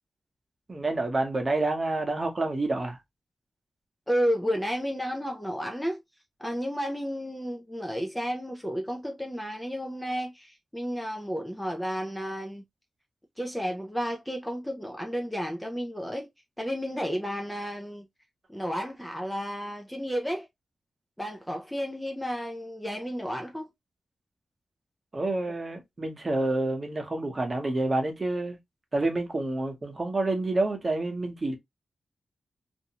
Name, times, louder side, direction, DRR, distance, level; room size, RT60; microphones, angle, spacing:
voice 1, 0.7-3.0 25.1-28.6 28.9-31.6, right 2 dB, 35° right, 0.9 m, -28 dB
voice 2, 4.1-6.0 6.4-12.6 13.4-16.3 16.6-18.1 18.5-20.5 21.2-23.7, equal, 5° left, 0.4 m, -32 dB
2.5 x 2.2 x 2.8 m
wide cardioid pair, 90°, 0 cm